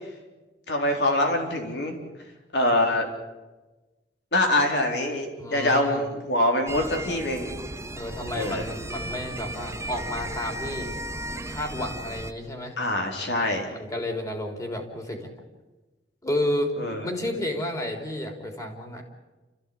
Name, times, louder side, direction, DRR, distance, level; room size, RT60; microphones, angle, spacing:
voice 1, 0.7-2.0 2.5-3.1 4.3-7.5 8.3-8.7 12.8-13.7 16.8-17.0, left 1 dB, 70° left, 2 dB, 4.1 m, -24 dB
voice 2, 5.4-6.0 8.0-10.9 11.4-12.8 13.7-15.3 16.2-16.7 17.0-19.0, left 1 dB, 20° left, 3 dB, 3.6 m, -31 dB
sound 1, 6.7-12.3, right 1 dB, 15° right, 0.9 m, -35 dB
29.0 x 15.0 x 8.7 m, 1.2 s
head